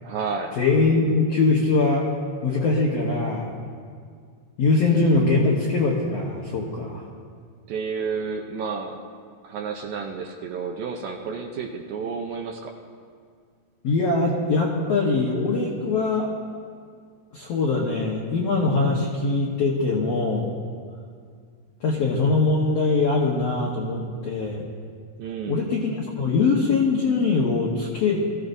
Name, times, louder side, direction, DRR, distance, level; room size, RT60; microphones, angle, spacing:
voice 1, 0.0-0.6 4.8-5.3 7.7-9.0 9.4-12.7 25.2-25.7, right 5 dB, 75° right, 2 dB, 2.2 m, -31 dB
voice 2, 0.6-2.0 2.4-3.5 4.6-7.0 13.8-16.3 17.3-20.5 21.8-24.6 25.5-25.9 26.2-28.2, left 3 dB, 80° left, -3 dB, 1.4 m, -22 dB
22.0 x 14.5 x 2.6 m, 2.1 s
omnidirectional pair, 4.8 m